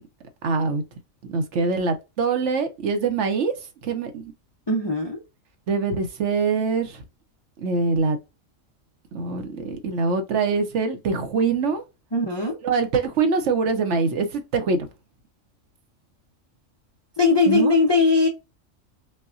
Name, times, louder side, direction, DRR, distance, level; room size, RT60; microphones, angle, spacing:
voice 1, 0.4-0.8 1.3-3.5 3.8-4.3 5.7-7.0 7.6-8.2 9.1-11.8 12.6-14.9 17.5-17.7, right 4 dB, 65° right, 1.0 m, -24 dB
voice 2, 4.7-5.2 12.1-12.6 17.2-18.3, left 3 dB, 35° left, 0.4 m, -19 dB
5.3 x 2.2 x 2.5 m
omnidirectional pair, 1.4 m